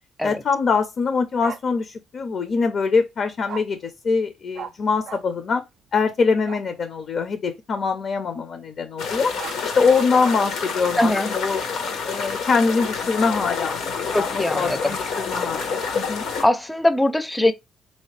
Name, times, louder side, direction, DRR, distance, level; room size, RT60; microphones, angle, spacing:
voice 1, 0.2-5.6 5.9-9.3 9.6-11.6 12.0-16.2, left 5 dB, 55° left, 0.6 m, -23 dB
Bark, 1.4-1.6 3.5-3.6 4.5-4.7 5.0-5.2 6.4-6.6 9.1-10.3, right 8 dB, 70° right, 0.4 m, -35 dB
sound 1, 9.0-16.4, left 5 dB, 85° left, 1.2 m, -28 dB
voice 2, 11.0-11.3 14.1-15.0 16.4-17.5, left 1 dB, 10° left, 0.5 m, -21 dB
3.8 x 2.8 x 3.2 m
cardioid pair, 90°, 0 cm